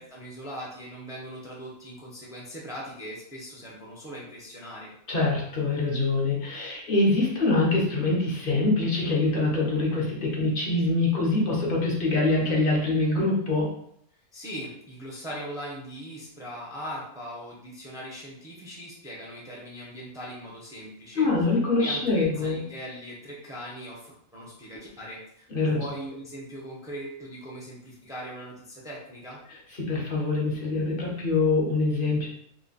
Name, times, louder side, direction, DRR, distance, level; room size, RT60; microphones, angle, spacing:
voice 1, 0.0-4.9 14.3-21.3 21.7-29.4, equal, 5° right, -5 dB, 0.5 m, -40 dB
voice 2, 5.1-13.7 21.2-22.6 25.5-25.9 29.5-32.3, left 2 dB, 45° left, -2 dB, 0.8 m, -24 dB
3.1 x 2.2 x 3.9 m, 0.70 s
omnidirectional pair, 1.5 m